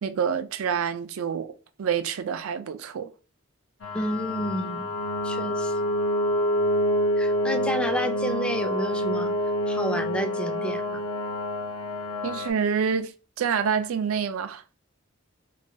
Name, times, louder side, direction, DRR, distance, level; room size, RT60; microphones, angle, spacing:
voice 1, 0.0-1.5 1.8-3.1 12.2-13.1 13.4-14.8, right 7 dB, 80° right, 0.4 m, -27 dB
sound 1, 3.8-12.5, equal, 75° left, 0.7 m, -27 dB
voice 2, 3.9-5.0 5.2-5.8 7.2-9.3 9.7-11.0, equal, 5° left, 0.3 m, -31 dB
3.1 x 2.3 x 2.6 m
head